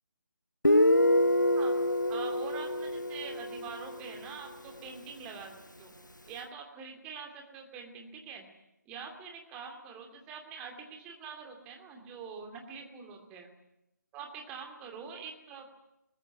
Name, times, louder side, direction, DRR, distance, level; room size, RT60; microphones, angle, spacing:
Guitar, 0.6-4.2, left 1 dB, 90° left, 1.2 m, -26 dB
voice 1, 2.1-5.9 6.3-8.4 8.9-13.5 14.1-15.7, right 5 dB, 10° right, 3 dB, 2.6 m, -45 dB
22.0 x 19.5 x 9.5 m, 0.86 s
figure-of-eight pair, 150°, 10 cm